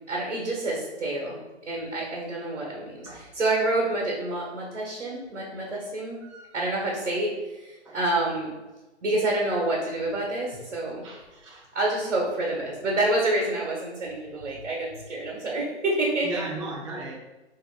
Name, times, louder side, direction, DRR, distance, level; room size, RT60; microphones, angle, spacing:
voice 1, 0.1-1.4 1.7-6.2 6.5-8.5 9.0-11.0 11.7-16.4, right 2 dB, 80° right, -2 dB, 1.3 m, -28 dB
voice 2, 6.2-6.6 7.8-8.0 9.7-9.9 10.5-10.6 11.0-11.7 16.2-17.2, right 2 dB, 25° right, -3 dB, 0.8 m, -38 dB
4.9 x 2.9 x 2.2 m, 1.1 s
hypercardioid pair, 160°, 35 cm